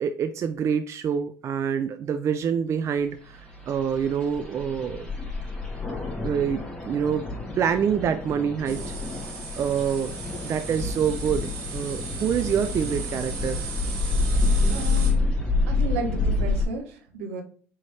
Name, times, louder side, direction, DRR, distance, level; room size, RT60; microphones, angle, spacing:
voice 1, 0.0-5.1 6.2-7.3 7.6-8.8 9.2-9.3 9.5-10.2 10.4-13.6, right 7 dB, 40° right, 8 dB, 0.4 m, -26 dB
sound 1, 3.3-16.6, left 3 dB, 10° left, 1.8 m, -28 dB
sound 2, 8.7-15.1, right 5 dB, 55° right, 1.7 m, -38 dB
voice 2, 14.6-15.3 15.7-17.4, right 4 dB, 75° right, 4 dB, 0.9 m, -33 dB
4.2 x 3.2 x 3.4 m, 0.43 s
hypercardioid pair, 65°, 8 cm